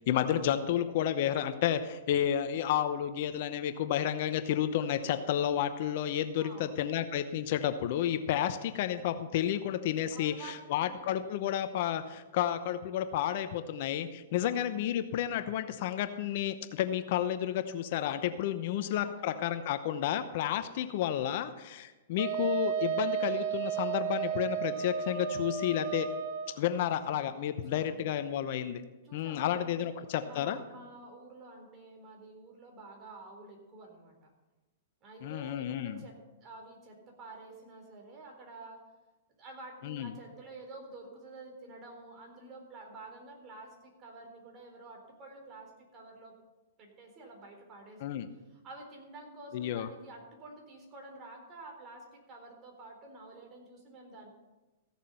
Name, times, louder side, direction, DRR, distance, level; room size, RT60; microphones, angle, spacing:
voice 1, 0.1-26.1 26.6-28.8 29.1-30.6 35.2-36.0 39.8-40.1 48.0-48.3 49.5-49.9, left 10 dB, 55° left, 10 dB, 0.8 m, -31 dB
voice 2, 6.4-6.8 10.1-11.2 14.4-14.6 18.8-19.5 27.6-28.1 29.0-34.3 35.0-38.9 39.4-46.3 46.8-48.1 48.5-54.3, right 2 dB, 30° right, 1 dB, 3.9 m, -50 dB
Wind instrument woodwind instrument, 22.2-26.6, right 8 dB, 50° right, 1.1 m, -33 dB
15.5 x 7.2 x 5.6 m, 1.1 s
hypercardioid pair, 130°, 0 cm